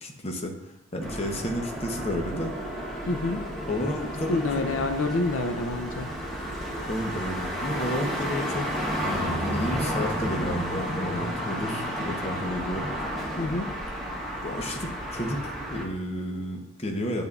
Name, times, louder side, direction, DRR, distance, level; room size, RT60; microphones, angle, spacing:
voice 1, 0.0-2.5 3.7-4.6 6.9-12.9 14.4-17.2, left 1 dB, 30° left, 2 dB, 0.7 m, -32 dB
sound 1, 1.0-15.9, equal, ahead, 1.1 m, -32 dB
voice 2, 3.1-3.4 4.3-6.1 13.4-13.7, left 2 dB, 80° left, 6 dB, 0.5 m, -27 dB
8.7 x 5.3 x 2.4 m, 0.88 s
head